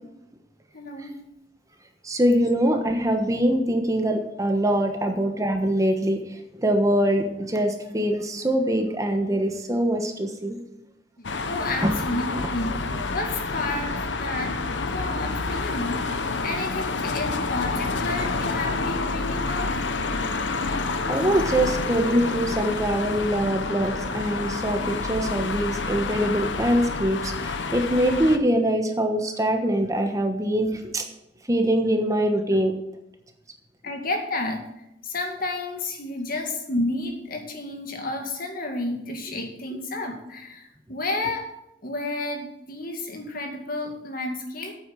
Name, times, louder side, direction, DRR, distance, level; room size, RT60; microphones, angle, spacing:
voice 1, 0.7-1.1 11.4-12.7 13.1-13.9 14.2-14.6 14.9-19.8 33.8-34.6 35.0-41.5 41.8-44.8, left 2 dB, 50° left, 4 dB, 2.1 m, -31 dB
voice 2, 2.0-6.2 6.6-10.6 11.8-11.9 21.1-31.0 31.5-32.7, right 1 dB, 20° right, 4 dB, 1.2 m, -23 dB
sound 1, 11.2-28.4, left 3 dB, 75° left, 0.9 m, -28 dB
8.9 x 8.2 x 7.6 m, 0.86 s
head